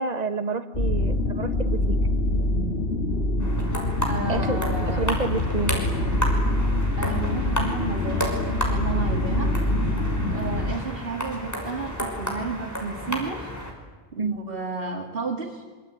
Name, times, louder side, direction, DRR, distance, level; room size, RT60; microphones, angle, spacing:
voice 1, 0.0-1.8 4.3-5.8 14.2-14.4, right 3 dB, 40° right, 9 dB, 1.7 m, -29 dB
sound 1, 0.7-10.7, left 1 dB, 75° left, 2.5 m, -25 dB
sound 2, 3.4-13.7, equal, 15° left, 5.6 m, -32 dB
voice 2, 4.1-5.1 7.0-9.6 10.3-13.5 14.1-15.6, right 4 dB, 65° right, 2 dB, 2.5 m, -32 dB
26.0 x 25.0 x 9.3 m, 1.4 s
omnidirectional pair, 1.0 m